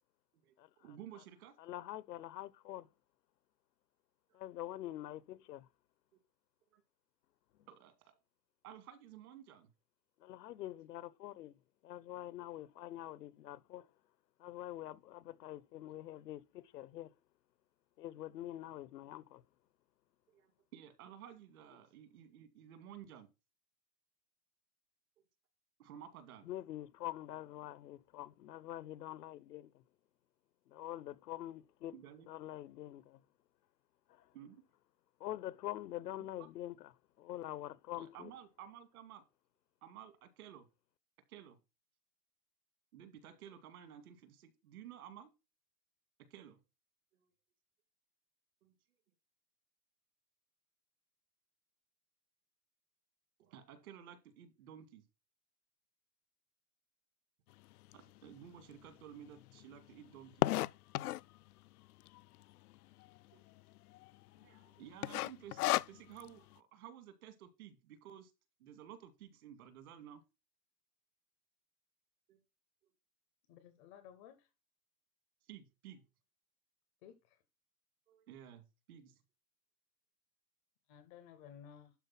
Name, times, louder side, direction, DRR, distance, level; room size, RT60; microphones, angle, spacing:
voice 1, 0.4-1.5 4.3-4.4 6.1-6.2 6.7-6.8 7.7-8.2 8.6-9.7 14.6-14.7 20.3-23.3 25.2-25.3 25.8-26.5 31.9-32.3 34.3-34.6 36.4-36.5 38.0-39.2 39.8-40.7 41.3-41.6 42.9-45.3 46.2-46.6 47.1-47.3 48.6-48.7 53.4-55.0 57.9-60.4 63.3-63.4 64.3-68.3 68.6-70.2 72.3-72.4 72.8-72.9 75.5-76.0 78.1-79.1, right 10 dB, 65° right, 2.3 m, -54 dB
voice 2, 1.6-2.9 4.3-5.7 10.2-11.5 11.8-13.9 14.4-17.1 18.0-19.4 26.4-29.8 30.7-32.0 32.3-33.2 34.1-34.3 35.2-38.3, left 13 dB, 90° left, 1.0 m, -45 dB
sound 1, 57.9-58.0 58.6-58.7 58.9-59.0 59.2-61.4 62.0-62.4 62.8-62.9 63.1-63.2 63.7-64.1 64.4-64.6 65.0-66.3, left 17 dB, 70° left, 0.5 m, -33 dB
voice 3, 73.5-74.5 77.0-77.4 80.9-81.9, left 9 dB, 15° left, 0.5 m, -56 dB
12.0 x 4.2 x 5.9 m
supercardioid pair, 165°, 47 cm